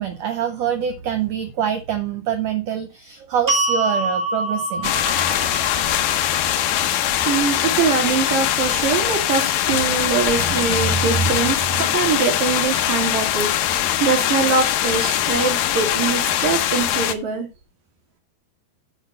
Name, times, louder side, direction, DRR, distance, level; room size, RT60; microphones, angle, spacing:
voice 1, 0.0-4.9 10.3-11.3 11.8-11.9, right 8 dB, 85° right, 7 dB, 1.4 m, -25 dB
sound 1, 3.5-9.7, right 2 dB, 20° right, 1.0 m, -28 dB
sound 2, 4.8-17.1, left 12 dB, 75° left, 2.3 m, -21 dB
voice 2, 7.3-13.7 14.0-17.5, right 5 dB, 70° right, 1 dB, 4.3 m, -23 dB
8.5 x 5.0 x 5.5 m, 0.28 s
omnidirectional pair, 4.1 m